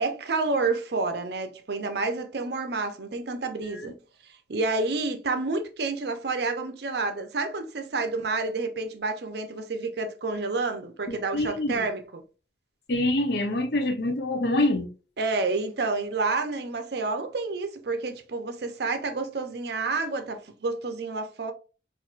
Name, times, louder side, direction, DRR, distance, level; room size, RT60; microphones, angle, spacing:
voice 1, 0.0-3.9 4.5-12.2 15.2-21.5, right 3 dB, 60° right, 0.6 m, -29 dB
voice 2, 11.1-11.9 12.9-14.9, left 1 dB, 60° left, 0.7 m, -26 dB
4.3 x 2.6 x 2.4 m
head